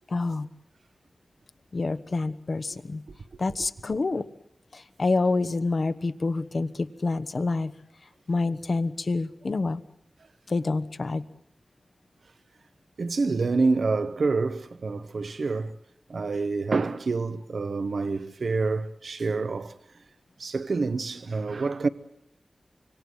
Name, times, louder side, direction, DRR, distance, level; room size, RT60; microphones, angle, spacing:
voice 1, 0.1-0.5 1.7-3.0 3.4-4.2 4.7-7.7 8.3-9.8 10.5-11.2, left 3 dB, 65° left, 1.1 m, -27 dB
voice 2, 13.0-15.8 16.1-19.7 20.4-21.9, right 4 dB, 80° right, 1.0 m, -27 dB
25.5 x 24.0 x 7.8 m
wide cardioid pair, 80°, 0 cm